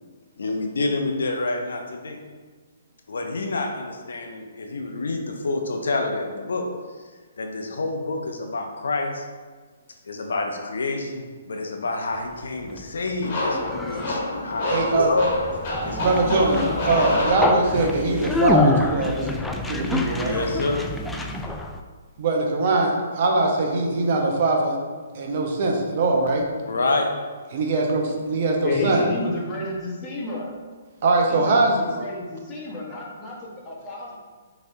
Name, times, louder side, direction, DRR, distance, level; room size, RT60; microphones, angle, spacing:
voice 1, 0.4-2.2 3.1-6.7 7.4-9.2 10.1-15.4 15.8-16.2 20.2-20.8 26.7-27.1, left 3 dB, 70° left, 3 dB, 0.6 m, -27 dB
Conversation, 12.3-21.8, left 2 dB, 5° left, 0.3 m, -27 dB
sound 1, 13.2-18.0, left 1 dB, 45° left, 1.4 m, -28 dB
voice 2, 14.7-15.1 16.0-19.4 19.7-20.4 22.2-24.8 25.1-26.5 27.5-29.0 31.0-31.8, right 3 dB, 45° right, 1 dB, 0.8 m, -22 dB
voice 3, 28.6-30.5 31.3-34.2, left 2 dB, 25° left, -3 dB, 1.2 m, -30 dB
6.1 x 3.1 x 2.7 m, 1.5 s
figure-of-eight pair, 130°, 0 cm